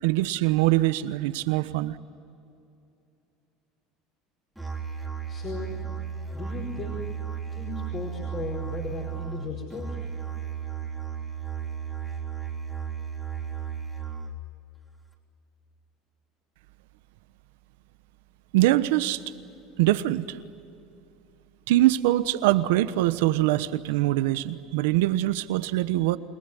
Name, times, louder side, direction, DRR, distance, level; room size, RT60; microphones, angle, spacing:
voice 1, 0.0-2.0 18.5-19.2 19.8-20.4 21.7-26.2, right 16 dB, 85° right, 13 dB, 1.1 m, -23 dB
Musical instrument, 4.6-14.5, right 7 dB, ahead, 3.6 m, -34 dB
voice 2, 5.3-5.8 6.3-7.1 7.5-10.0, left 3 dB, 35° left, -2 dB, 4.8 m, -36 dB
29.0 x 19.5 x 9.9 m, 2.7 s
supercardioid pair, 135°, 0 cm